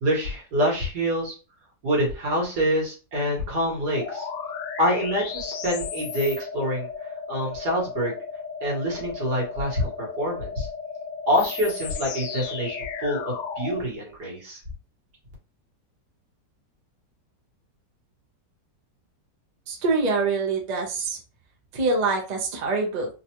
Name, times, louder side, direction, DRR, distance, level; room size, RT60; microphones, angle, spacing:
voice 1, 0.0-1.4 1.8-4.3 4.8-6.9 7.3-8.2 8.6-10.7 11.3-12.8 13.0-14.6, equal, 70° right, -2 dB, 2.0 m, -26 dB
sound 1, 3.9-13.8, left 5 dB, 90° left, 1.3 m, -34 dB
voice 2, 19.7-21.2 21.7-23.1, right 3 dB, 40° right, 0 dB, 0.6 m, -25 dB
3.9 x 2.4 x 2.9 m, 0.33 s
omnidirectional pair, 1.9 m